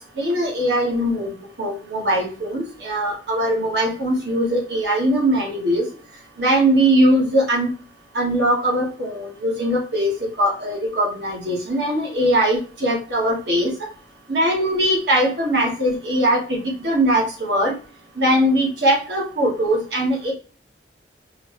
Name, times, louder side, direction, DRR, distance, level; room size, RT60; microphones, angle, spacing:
voice 1, 0.2-1.3 1.6-5.8 6.4-7.7 8.1-10.1 10.4-13.7 14.3-17.7 18.2-20.3, right 1 dB, 65° right, -2 dB, 1.7 m, -20 dB
4.8 x 3.2 x 3.2 m, 0.38 s
head